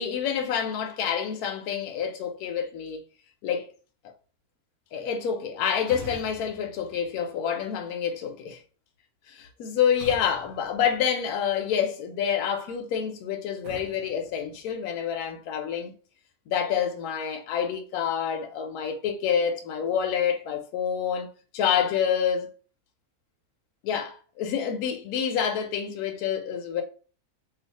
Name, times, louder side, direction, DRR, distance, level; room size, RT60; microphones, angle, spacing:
voice 1, 0.0-3.0 3.4-3.7 4.9-8.6 9.3-15.9 16.5-21.3 21.5-22.5 23.8-26.8, left 8 dB, 80° left, 1.1 m, -27 dB
sound 1, 5.9-7.8 10.0-11.7 13.6-15.3, right 1 dB, 70° right, 1.0 m, -46 dB
2.7 x 2.5 x 3.9 m
omnidirectional pair, 1.6 m